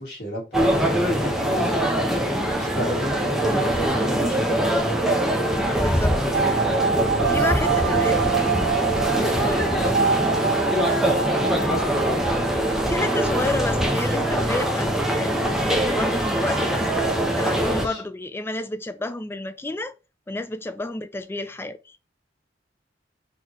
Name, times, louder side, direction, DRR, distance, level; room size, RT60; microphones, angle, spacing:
voice 1, 0.0-1.8 2.3-4.7 7.1-7.6 7.9-11.8 17.5-18.0, equal, 65° left, 1.8 m, -34 dB
sound 1, 0.5-17.9, right 1 dB, ahead, 0.7 m, -23 dB
voice 2, 5.8-6.5 7.2-8.2 9.4-9.7 12.8-16.8 17.4-19.9 20.3-22.0, left 2 dB, 15° left, 0.3 m, -30 dB
sound 2, 6.3-14.8 15.1-15.2 15.4-15.5, right 7 dB, 75° right, 0.3 m, -26 dB
4.0 x 3.1 x 3.0 m
head